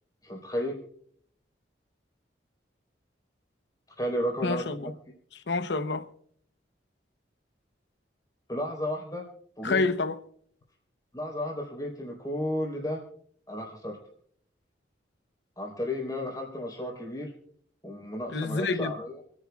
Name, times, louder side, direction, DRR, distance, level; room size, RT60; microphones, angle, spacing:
voice 1, 0.2-0.8 4.0-4.9 8.5-9.3 9.6-9.8 11.1-13.0 13.5-14.0 15.6-17.3 17.8-19.2, left 1 dB, 20° left, 3.9 m, -33 dB
voice 2, 4.4-4.9 5.3-6.0 9.6-10.2 18.3-18.9, left 3 dB, 70° left, 0.8 m, -28 dB
29.0 x 9.9 x 2.3 m
head